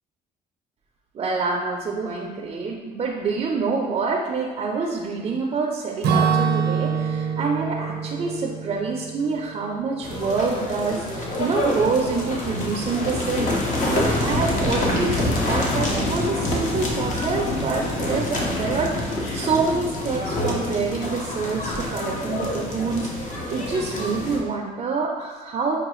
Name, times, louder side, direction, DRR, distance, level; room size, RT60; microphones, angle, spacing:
voice 1, 1.1-25.8, right 4 dB, 35° right, 0 dB, 0.4 m, -26 dB
Acoustic guitar / Strum, 6.0-10.0, right 6 dB, 80° right, 0.6 m, -25 dB
sound 1, 10.0-24.4, left 1 dB, 45° left, 0.8 m, -26 dB
5.4 x 2.3 x 3.0 m, 1.4 s
cardioid pair, 110°, 17 cm